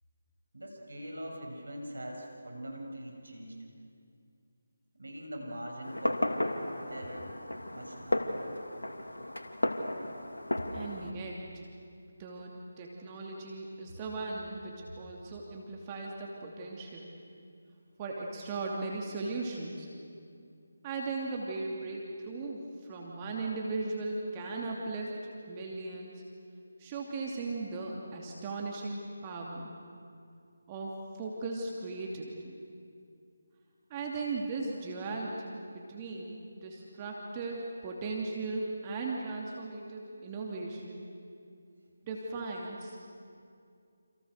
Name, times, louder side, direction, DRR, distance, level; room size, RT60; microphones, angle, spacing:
voice 1, 0.5-3.6 4.9-6.3 6.9-7.3 7.7-8.5, equal, 70° right, 1 dB, 7.4 m, -42 dB
Fireworks, 5.8-11.1, left 1 dB, 75° left, 2.6 m, -34 dB
voice 2, 10.7-11.7 12.2-17.1 18.0-19.9 20.8-25.2 25.5-26.2 26.8-29.7 30.7-32.5 33.9-41.0 42.0-43.0, right 3 dB, 20° right, -2 dB, 2.7 m, -37 dB
29.5 x 28.0 x 6.7 m, 2.5 s
figure-of-eight pair, 155°, 0 cm